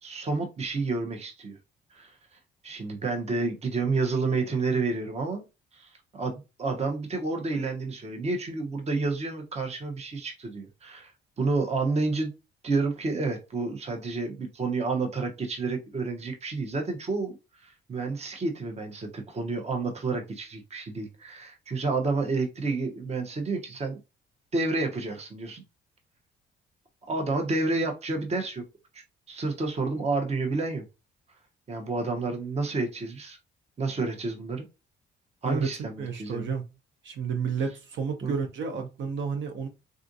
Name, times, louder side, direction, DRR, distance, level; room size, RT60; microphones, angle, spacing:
voice 1, 0.0-1.6 1.9-2.1 2.6-5.5 5.7-11.1 11.4-12.3 12.6-17.3 17.6-24.0 24.5-25.6 27.1-28.6 28.9-30.8 31.7-33.4 33.8-34.6 35.4-36.4 38.2-38.3, right 3 dB, 30° right, 0.8 m, -30 dB
voice 2, 36.0-36.7 37.0-39.7, right 5 dB, 70° right, 0.7 m, -31 dB
3.6 x 2.4 x 2.6 m
cardioid pair, 90°, 20 cm